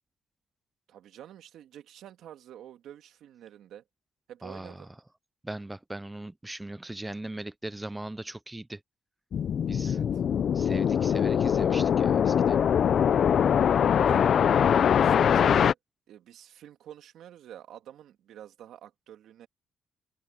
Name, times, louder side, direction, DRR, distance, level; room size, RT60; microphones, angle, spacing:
voice 1, 0.9-3.8 4.3-4.9 9.8-10.2 14.0-15.8 16.1-19.5, right 11 dB, 80° right, 2.6 m, -47 dB
voice 2, 4.4-4.8 5.4-8.8 9.7-10.0 10.5-12.6, right 1 dB, 10° right, 0.7 m, -39 dB
sound 1, 9.3-15.7, left 8 dB, 60° left, 0.6 m, -23 dB
cardioid pair, 90°, 0 cm